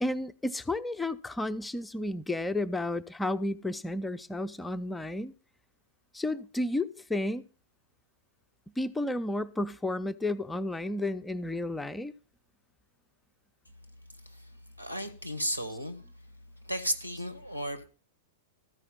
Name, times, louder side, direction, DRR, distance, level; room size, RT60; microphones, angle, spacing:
voice 1, 0.0-5.3 6.1-7.5 8.8-12.1, left 1 dB, 5° left, 0.4 m, -32 dB
voice 2, 14.8-16.0 16.6-17.8, equal, 90° right, 1.3 m, -34 dB
13.5 x 4.9 x 7.3 m
figure-of-eight pair, 100°, 0 cm